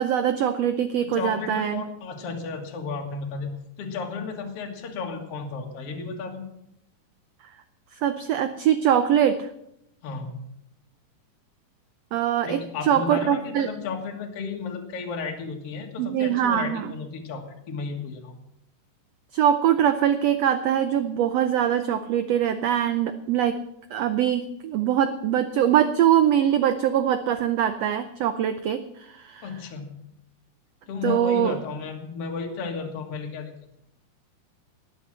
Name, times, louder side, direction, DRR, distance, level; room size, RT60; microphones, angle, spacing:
voice 1, 0.0-1.8 7.9-9.5 12.1-13.7 16.0-16.9 19.3-23.6 23.9-29.5 31.0-31.6, right 10 dB, 80° right, 10 dB, 1.5 m, -23 dB
voice 2, 1.0-6.5 10.0-10.4 12.4-18.3 29.4-29.9 30.9-33.5, left 4 dB, 50° left, 1 dB, 2.6 m, -33 dB
19.5 x 7.3 x 7.5 m, 0.79 s
omnidirectional pair, 3.7 m